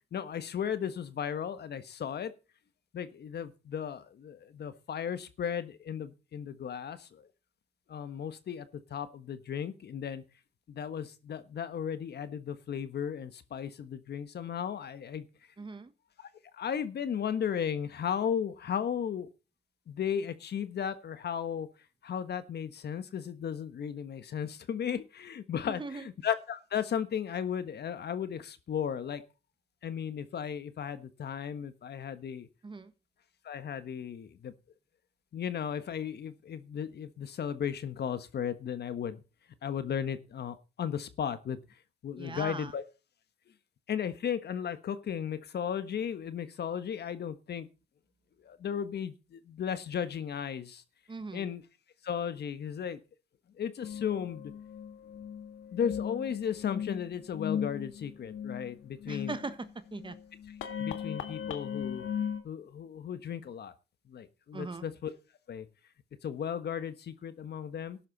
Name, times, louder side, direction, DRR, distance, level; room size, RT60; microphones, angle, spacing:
voice 1, 0.1-2.3 2.9-7.0 7.9-8.6 8.9-10.2 10.7-15.2 16.6-19.3 19.9-21.7 22.0-25.8 26.2-29.2 29.8-32.5 33.4-34.5 35.3-39.2 39.6-41.6 42.0-42.8 43.9-47.7 48.5-50.8 51.3-51.6 52.0-53.0 53.6-54.5 55.7-59.3 60.8-62.0 62.4-63.7 64.1-65.1 65.5-65.6 66.2-68.0, left 8 dB, 55° left, 1.4 m, -35 dB
voice 2, 15.6-15.9 25.7-26.1 32.6-32.9 42.2-42.7 51.1-51.5 59.1-60.2 64.5-64.9, right 3 dB, 25° right, 1.3 m, -40 dB
sound 1, 53.8-62.4, left 8 dB, 80° left, 1.8 m, -38 dB
13.0 x 11.0 x 4.1 m
cardioid pair, 90°, 20 cm